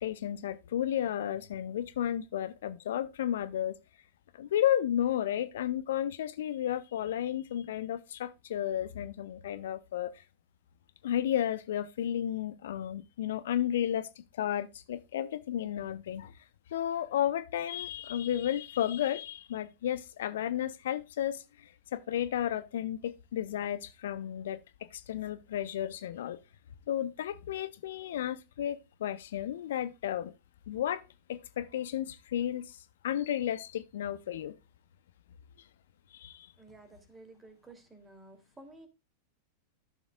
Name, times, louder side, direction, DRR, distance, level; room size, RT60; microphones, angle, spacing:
voice 1, 0.0-3.8 4.3-10.2 11.0-16.4 16.7-24.6 24.9-26.4 26.9-30.3 30.7-31.0 31.3-34.6 35.6-35.7 36.1-36.5, left 11 dB, 60° left, 0.6 m, -33 dB
voice 2, 36.6-38.9, right 2 dB, 10° right, 2.8 m, -53 dB
12.5 x 7.0 x 2.3 m
figure-of-eight pair, 90°, 0 cm